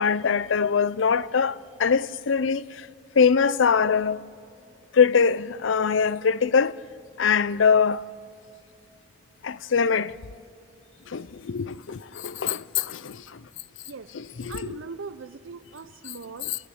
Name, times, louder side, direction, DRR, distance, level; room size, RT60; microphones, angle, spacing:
voice 1, 0.0-2.9 3.1-4.2 4.9-6.8 7.2-8.0 9.4-10.2 11.1-13.5 14.1-14.8 16.4-16.6, left 6 dB, 80° left, 0.5 m, -23 dB
voice 2, 14.5-16.5, right 4 dB, 90° right, 0.6 m, -40 dB
29.0 x 16.0 x 8.6 m
head